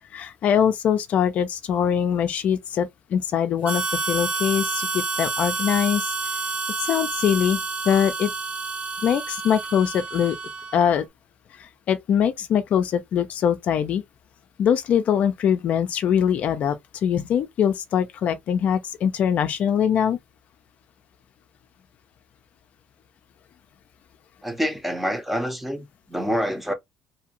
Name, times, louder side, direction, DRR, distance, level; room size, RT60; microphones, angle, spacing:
voice 1, 0.1-6.1 6.8-7.6 7.9-8.3 9.0-10.4 10.7-11.1 11.6-14.0 14.6-16.8 17.0-20.2, left 8 dB, 55° left, 0.4 m, -22 dB
Harmonica, 3.6-10.9, right 4 dB, 55° right, 1.0 m, -29 dB
voice 2, 24.4-26.7, equal, 5° right, 0.7 m, -27 dB
2.7 x 2.4 x 2.9 m
cardioid pair, 100°, 3 cm